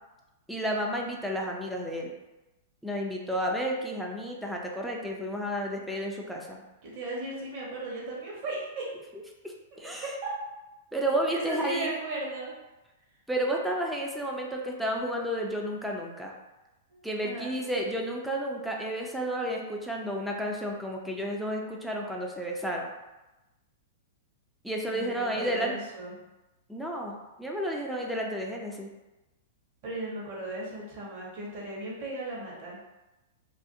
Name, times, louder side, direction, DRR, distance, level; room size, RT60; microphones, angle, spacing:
voice 1, 0.5-2.1 2.8-6.6 9.4-10.1 10.9-11.9 13.3-16.3 17.0-22.9 24.6-25.7 26.7-28.9, equal, ahead, -1 dB, 0.3 m, -31 dB
voice 2, 6.8-8.9 9.7-10.3 11.3-12.5 16.9-17.5 24.9-26.2 29.8-32.8, right 2 dB, 45° right, -4 dB, 0.9 m, -36 dB
2.4 x 2.4 x 2.6 m, 1.0 s
hypercardioid pair, 140°, 0 cm